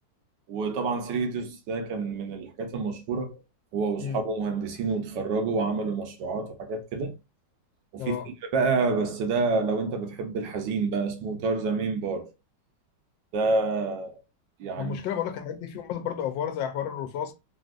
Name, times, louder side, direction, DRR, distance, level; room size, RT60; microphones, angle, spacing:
voice 1, 0.5-3.4 3.7-7.1 7.9-12.3 13.3-14.2 14.6-15.0, right 4 dB, 75° right, 1.3 m, -28 dB
voice 2, 14.8-17.3, left 9 dB, 90° left, 1.3 m, -31 dB
3.5 x 2.5 x 2.4 m
omnidirectional pair, 2.0 m